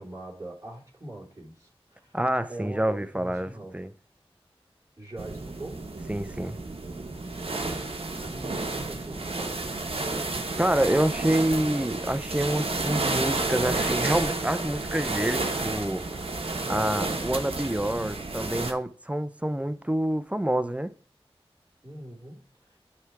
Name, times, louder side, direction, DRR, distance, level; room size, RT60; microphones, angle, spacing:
voice 1, 0.0-2.2 2.5-3.7 5.0-5.8 8.3-10.0 19.7-19.8 21.8-22.8, right 1 dB, 30° right, 3.1 m, -42 dB
voice 2, 2.1-3.9 6.1-6.6 10.6-16.0 16.7-20.9, right 1 dB, 10° right, 0.5 m, -27 dB
sound 1, 5.2-18.7, right 3 dB, 65° right, 1.1 m, -31 dB
9.8 x 3.4 x 4.7 m
wide cardioid pair, 40°, 10 cm